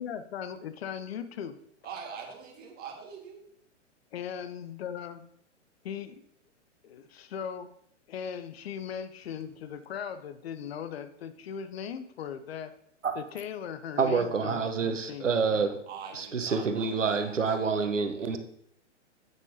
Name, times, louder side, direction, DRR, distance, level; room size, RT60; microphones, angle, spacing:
voice 1, 0.0-1.6 4.1-5.3 5.8-6.2 6.8-7.7 8.1-12.7 13.1-15.8, left 8 dB, 55° left, 11 dB, 0.7 m, -38 dB
voice 2, 1.8-3.4 15.9-17.5, right 6 dB, 25° right, 1 dB, 1.8 m, -43 dB
voice 3, 14.0-15.8 16.1-18.4, right 5 dB, 85° right, 8 dB, 1.0 m, -27 dB
8.2 x 8.2 x 2.8 m, 0.69 s
hypercardioid pair, 120°, 36 cm